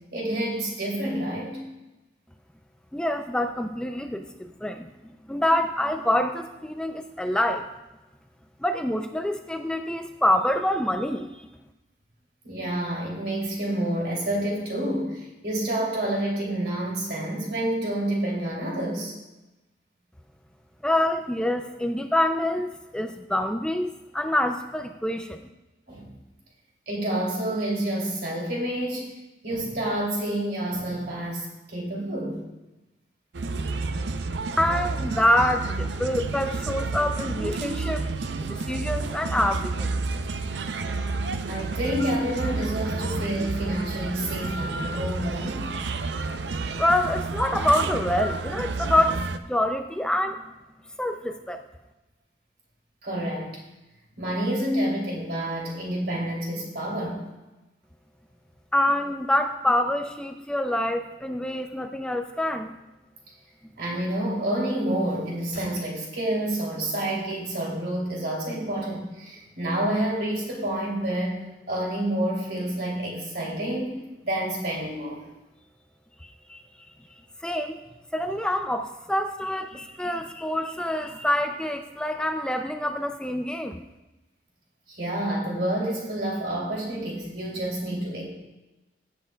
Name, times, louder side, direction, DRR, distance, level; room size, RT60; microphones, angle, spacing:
voice 1, 0.1-1.6 12.4-19.1 25.9-26.1 26.9-32.4 41.5-45.7 53.0-53.6 54.2-57.3 63.8-75.2 84.9-88.3, right 1 dB, 65° right, -2 dB, 3.0 m, -28 dB
voice 2, 2.9-4.9 5.3-7.7 8.6-11.5 20.8-25.5 34.6-39.9 46.8-50.4 51.0-51.6 58.7-62.7 76.2-76.6 77.4-77.8 78.1-83.8, left 1 dB, 5° left, 6 dB, 0.3 m, -26 dB
sound 1, 33.3-49.4, right 3 dB, 85° right, 0.5 m, -30 dB
17.5 x 8.0 x 2.3 m, 1.0 s
head